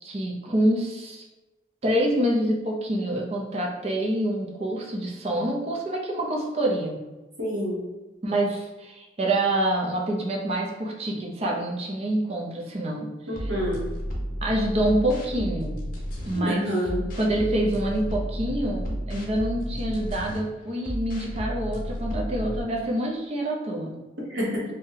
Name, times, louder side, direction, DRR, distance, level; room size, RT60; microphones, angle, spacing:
voice 1, 0.0-1.2 1.8-7.0 8.2-13.1 14.4-15.8 16.2-16.7 17.2-24.0, right 1 dB, 35° right, -1 dB, 0.5 m, -26 dB
voice 2, 7.4-7.9 13.3-13.8 16.3-17.0 24.3-24.6, equal, 75° right, -4 dB, 1.0 m, -27 dB
sound 1, 13.3-16.4 16.8-20.4 20.8-22.6, equal, 50° left, 0.6 m, -32 dB
2.7 x 2.1 x 3.8 m, 1.1 s
head